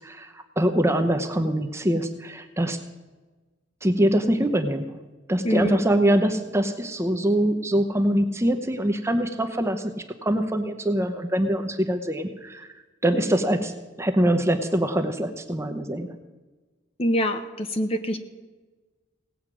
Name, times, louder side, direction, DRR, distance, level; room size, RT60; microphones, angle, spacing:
voice 1, 0.0-2.8 3.8-4.9 5.3-9.9 10.2-12.7 13.0-16.1, right 1 dB, 15° right, 7 dB, 0.8 m, -24 dB
voice 2, 5.4-5.8 17.0-18.2, equal, 30° left, 8 dB, 0.8 m, -25 dB
17.5 x 8.2 x 6.1 m, 1.3 s
head